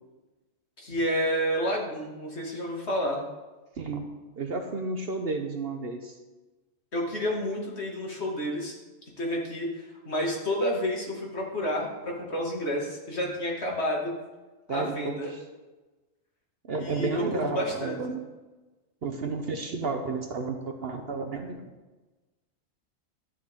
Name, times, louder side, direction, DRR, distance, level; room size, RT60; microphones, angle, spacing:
voice 1, 0.8-3.2 6.9-8.7 9.2-14.1 14.7-15.3 16.8-18.1, equal, 55° left, -2 dB, 2.4 m, -30 dB
voice 2, 4.4-6.2 14.7-15.4 16.7-18.2 19.0-21.6, right 3 dB, 50° right, 5 dB, 1.0 m, -32 dB
12.0 x 9.7 x 3.7 m, 1.2 s
omnidirectional pair, 1.4 m